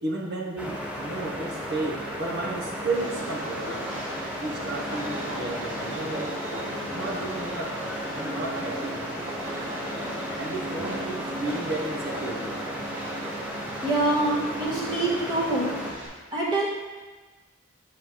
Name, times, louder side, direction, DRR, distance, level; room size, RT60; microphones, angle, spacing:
voice 1, 0.0-3.8 4.4-6.4 6.9-7.8 8.1-9.2 10.4-12.6, right 2 dB, 55° right, 0 dB, 0.9 m, -33 dB
sound 1, 0.6-15.9, equal, 5° right, 0.8 m, -34 dB
Train, 2.9-16.1, equal, 70° right, 1.6 m, -38 dB
voice 2, 13.8-15.7 16.3-16.7, right 2 dB, 20° right, -6 dB, 1.4 m, -25 dB
7.6 x 4.6 x 3.7 m, 1.3 s
head